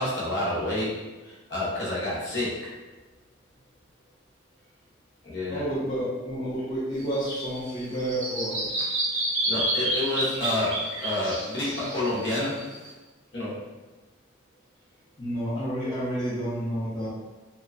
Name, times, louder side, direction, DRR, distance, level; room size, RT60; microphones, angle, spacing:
voice 1, 0.0-2.5 5.2-5.6 9.5-12.7 13.3-13.6, left 1 dB, 55° left, -8 dB, 0.9 m, -29 dB
voice 2, 5.5-8.7 15.2-17.1, right 1 dB, 20° left, -11 dB, 0.7 m, -30 dB
Bird vocalization bird call bird song, 7.0-12.9, right 1 dB, 70° right, 0.6 m, -29 dB
2.9 x 2.2 x 2.4 m, 1.2 s
head